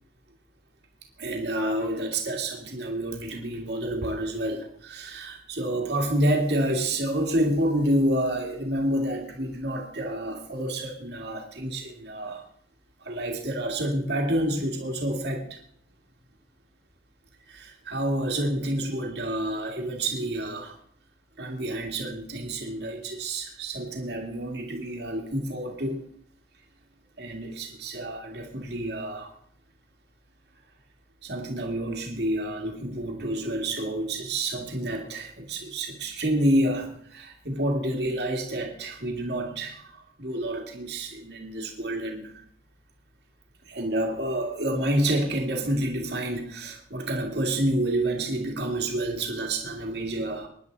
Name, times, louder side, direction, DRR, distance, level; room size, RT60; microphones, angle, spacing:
voice 1, 1.2-12.4 13.0-15.6 17.5-20.8 21.4-26.0 27.2-29.3 31.2-42.3 43.6-50.5, right 1 dB, 60° right, 1 dB, 2.3 m, -29 dB
24.0 x 10.5 x 4.0 m, 0.64 s
head